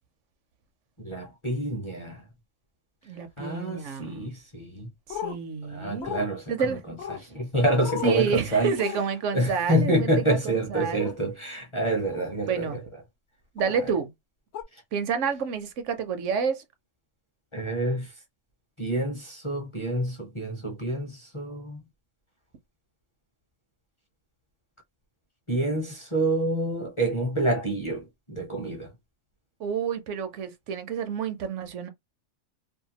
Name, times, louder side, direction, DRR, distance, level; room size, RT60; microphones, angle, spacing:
voice 1, 1.0-2.2 3.4-4.9 5.7-8.7 9.3-12.8 14.7-14.8 17.5-18.1 18.8-21.8 25.5-28.9, right 1 dB, 30° left, 0.6 m, -27 dB
voice 2, 3.1-4.3 5.1-6.1 6.5-6.8 8.0-11.1 12.5-12.8 13.5-14.1 14.9-16.6 29.6-31.9, right 6 dB, 70° right, 0.9 m, -29 dB
sound 1, 5.1-5.4 6.0-6.3 7.0-7.2 7.8-8.2 8.8-9.0 11.0-11.2 12.0-12.3 13.6-13.7 14.5-14.6, left 9 dB, 65° left, 0.8 m, -35 dB
2.7 x 2.2 x 2.8 m
omnidirectional pair, 1.4 m